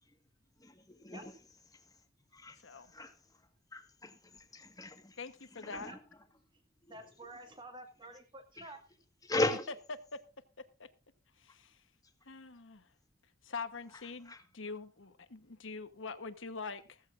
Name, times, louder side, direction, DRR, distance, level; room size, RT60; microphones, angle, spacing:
voice 1, 0.9-1.2 2.3-2.5 2.9-3.1 3.7-4.1 4.5-5.1 5.7-5.9 9.3-9.6 14.3-14.4, left 2 dB, 20° left, 1.6 m, -35 dB
voice 2, 5.2-5.9 9.9-10.2 10.8-10.9 11.4-11.8 12.3-12.9 13.4-17.0, left 4 dB, 70° left, 1.2 m, -44 dB
voice 3, 6.9-8.8, right 1 dB, 25° right, 2.2 m, -50 dB
15.5 x 15.0 x 2.6 m
head